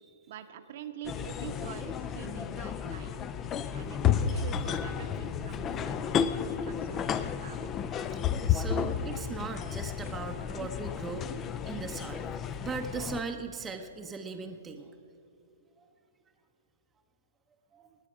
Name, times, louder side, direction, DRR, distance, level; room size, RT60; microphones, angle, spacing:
voice 1, 0.3-3.3 3.7-7.8, right 8 dB, 55° right, 7 dB, 0.9 m, -45 dB
sound 1, 1.0-13.2, left 8 dB, 20° left, 0.5 m, -32 dB
voice 2, 8.5-14.9 15.8-15.9 17.7-17.9, right 4 dB, 15° right, 4 dB, 0.7 m, -39 dB
19.5 x 7.4 x 5.0 m, 2.6 s
hypercardioid pair, 135°, 0 cm